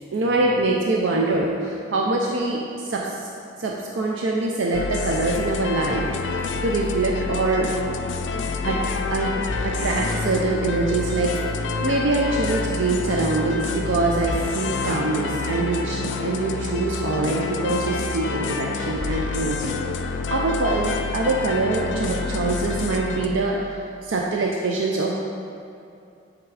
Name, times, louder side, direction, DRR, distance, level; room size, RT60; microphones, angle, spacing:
voice 1, 0.1-3.2 3.6-7.7 8.6-8.8 9.1-9.3 9.6-11.4 11.8-19.7 20.3-25.2, right 2 dB, 85° right, -1 dB, 0.5 m, -24 dB
sound 1, 4.7-23.3, left 4 dB, 75° left, 0.4 m, -28 dB
8.1 x 3.6 x 4.8 m, 2.5 s
head